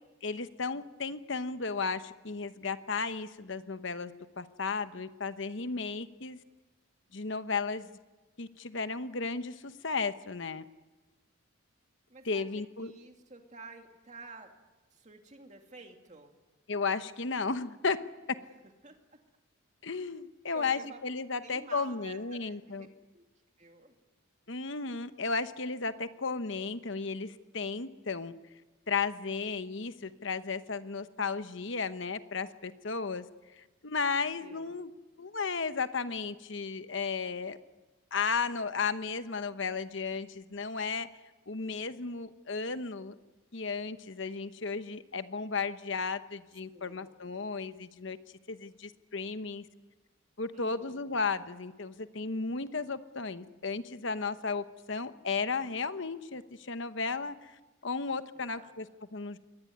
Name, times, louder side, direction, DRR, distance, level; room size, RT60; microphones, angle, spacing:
voice 1, 0.2-6.4 7.1-7.9 8.4-10.6 12.2-12.9 16.7-18.0 18.3-18.4 19.8-22.9 24.5-28.3 28.9-33.2 33.5-34.9 35.2-37.6 38.1-41.1 41.5-43.2 43.5-48.2 48.5-49.7 50.4-59.4, left 4 dB, 60° left, 11 dB, 1.0 m, -34 dB
voice 2, 12.1-14.5 14.9-16.4 18.6-19.0 20.5-21.0 21.4-22.9 23.1-23.3 23.6-23.9 34.4-34.8 46.7-47.1 50.5-51.0 58.4-58.8, right 3 dB, 35° right, 4 dB, 2.5 m, -51 dB
22.5 x 18.5 x 9.5 m, 1.2 s
head